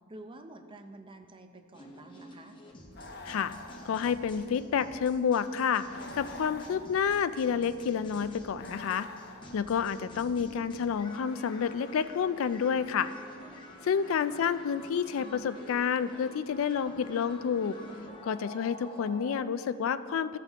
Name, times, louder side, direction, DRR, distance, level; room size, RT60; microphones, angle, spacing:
voice 1, 0.1-2.6 14.0-14.2, right 2 dB, 25° right, 6 dB, 0.5 m, -49 dB
sound 1, 1.7-19.3, left 1 dB, 25° left, 0.9 m, -49 dB
sound 2, 2.9-4.7 5.9-7.4 8.5-9.9 11.3-12.4, left 2 dB, 50° left, 0.8 m, -48 dB
voice 2, 3.9-9.1 9.5-13.1 13.8-17.8 18.2-20.4, left 7 dB, 70° left, 13 dB, 0.3 m, -29 dB
14.5 x 5.8 x 3.5 m, 2.3 s
head